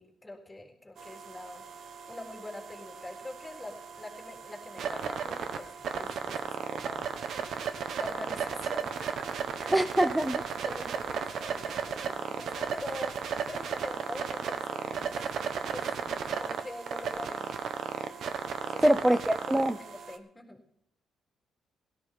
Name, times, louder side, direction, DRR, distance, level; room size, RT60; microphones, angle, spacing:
voice 1, 0.0-1.6 2.1-7.1 8.0-9.9 10.6-15.2 15.7-15.9 16.3-17.5 18.6-19.2 19.8-20.6, left 1 dB, 15° left, 0 dB, 3.7 m, -44 dB
sound 1, 1.0-20.2, right 6 dB, 65° right, 1.3 m, -35 dB
voice 2, 9.7-10.4 18.8-19.8, right 1 dB, 5° right, 9 dB, 0.7 m, -24 dB
17.0 x 13.5 x 3.8 m, 0.74 s
cardioid pair, 90°, 0 cm